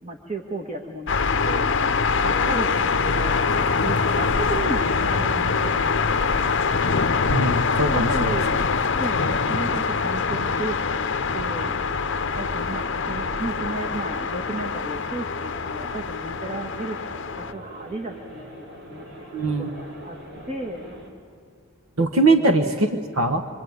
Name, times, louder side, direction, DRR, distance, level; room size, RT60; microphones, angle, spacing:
voice 1, 0.0-6.4 7.8-8.7 9.0-11.0 11.3-11.7 12.4-19.0 19.4-20.2 20.4-20.9 22.2-22.5, right 2 dB, 30° right, 2 dB, 1.6 m, -34 dB
sound 1, 1.1-17.5, left 5 dB, 55° left, 0.7 m, -24 dB
sound 2, 2.1-21.1, equal, 50° right, 4.1 m, -42 dB
voice 2, 7.3-8.4 19.3-19.7 22.0-23.4, right 2 dB, 70° right, 6 dB, 1.3 m, -21 dB
26.0 x 24.0 x 9.6 m, 2.1 s
head